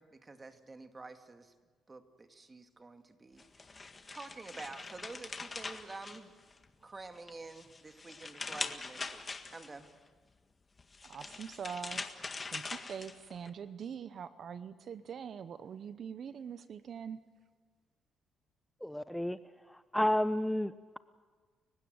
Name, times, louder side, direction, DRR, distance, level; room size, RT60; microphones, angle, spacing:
voice 1, 0.0-1.5 1.9-6.3 6.8-9.2 9.5-9.9, right 3 dB, 25° right, 7 dB, 2.2 m, -49 dB
sound 1, 3.4-6.7 7.2-9.9 10.8-13.5, left 4 dB, 30° left, 1.8 m, -43 dB
voice 2, 11.0-12.1 12.5-17.2, right 7 dB, 55° right, 13 dB, 0.9 m, -43 dB
voice 3, 18.8-19.4 19.9-21.0, left 1 dB, 5° left, 13 dB, 0.6 m, -31 dB
30.0 x 16.0 x 7.8 m, 1.5 s
cardioid pair, 90°, 0 cm